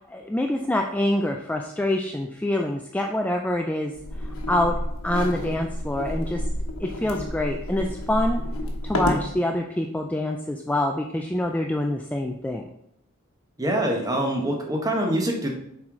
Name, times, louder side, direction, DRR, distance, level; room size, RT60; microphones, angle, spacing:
voice 1, 0.0-3.9 4.5-4.8 5.0-6.4 6.8-8.4 8.8-12.7, left 1 dB, 5° left, 2 dB, 0.3 m, -26 dB
sound 1, 4.0-9.3, left 1 dB, 80° left, 1.2 m, -29 dB
voice 2, 13.6-15.5, right 1 dB, 15° right, 1 dB, 1.0 m, -24 dB
7.3 x 4.7 x 3.8 m, 0.76 s
head